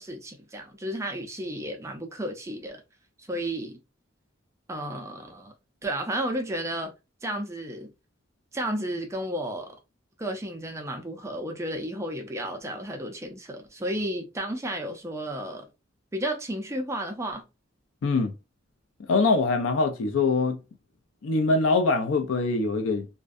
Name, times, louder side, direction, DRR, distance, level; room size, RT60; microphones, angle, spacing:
voice 1, 0.0-2.8 3.2-3.8 4.7-5.5 5.8-6.9 7.2-7.9 8.5-9.8 10.2-15.7 16.1-17.4, right 1 dB, 15° right, 0.4 m, -32 dB
voice 2, 18.0-18.3 19.1-20.6 21.2-23.1, left 3 dB, 85° left, 0.4 m, -23 dB
2.5 x 2.1 x 2.4 m
head